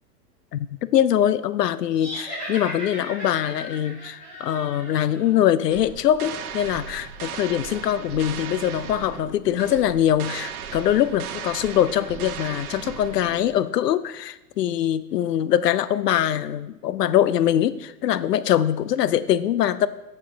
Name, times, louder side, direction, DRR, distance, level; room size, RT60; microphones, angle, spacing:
voice 1, 0.5-19.9, left 11 dB, 80° left, 16 dB, 0.6 m, -23 dB
sound 1, 1.9-5.3, equal, 15° left, 2.8 m, -36 dB
sound 2, 5.7-13.6, right 7 dB, 60° right, 1.0 m, -36 dB
7.5 x 6.5 x 3.8 m, 0.99 s
hypercardioid pair, 110°, 48 cm